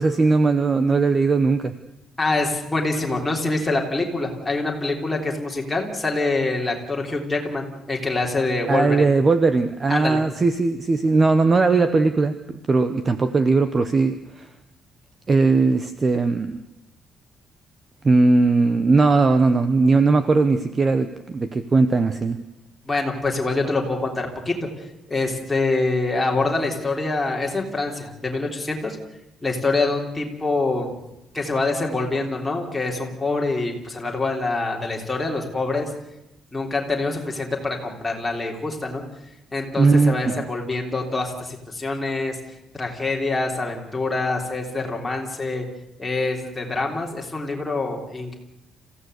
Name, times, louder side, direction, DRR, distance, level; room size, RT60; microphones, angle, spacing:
voice 1, 0.0-1.7 8.7-14.5 15.3-16.6 18.0-22.4 39.8-40.4, right 3 dB, 20° right, 10 dB, 0.9 m, -19 dB
voice 2, 2.2-9.1 9.9-10.2 22.9-24.7 25.1-29.0 29.4-30.9 31.3-35.9 36.5-39.0 39.5-42.4 42.7-45.6 46.0-48.4, left 3 dB, 10° left, 0 dB, 3.3 m, -25 dB
27.0 x 16.0 x 8.1 m, 0.89 s
cardioid pair, 180°, 0 cm